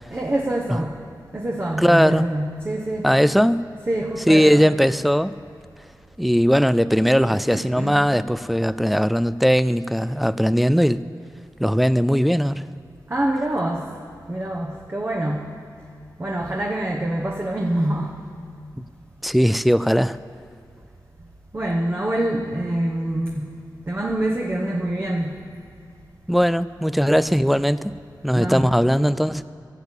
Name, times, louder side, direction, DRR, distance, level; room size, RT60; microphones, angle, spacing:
voice 1, 0.1-0.9 1.3-3.1 3.9-4.7 7.3-8.1 13.1-13.9 14.3-15.4 16.2-18.1 21.5-23.5 23.9-25.3 28.3-28.7, right 1 dB, 30° right, -1 dB, 1.0 m, -25 dB
voice 2, 1.8-2.3 3.0-3.6 4.3-5.3 6.2-11.0 11.6-12.6 19.2-20.2 26.3-27.9 28.2-29.4, equal, ahead, 15 dB, 0.3 m, -19 dB
15.0 x 7.2 x 8.2 m, 2.5 s
wide cardioid pair, 95°, 8 cm